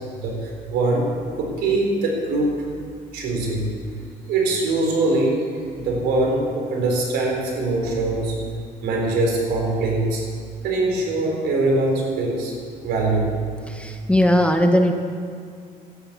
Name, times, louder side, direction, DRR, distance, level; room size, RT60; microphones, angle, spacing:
voice 1, 0.2-1.1 1.4-2.5 3.1-3.6 4.3-5.4 5.7-8.4 8.8-10.2 10.6-12.5 12.8-13.3, right 2 dB, 80° right, 0 dB, 4.2 m, -22 dB
voice 2, 13.7-14.9, equal, 5° left, 4 dB, 1.1 m, -18 dB
12.5 x 10.5 x 7.2 m, 2.2 s
cardioid pair, 110°, 17 cm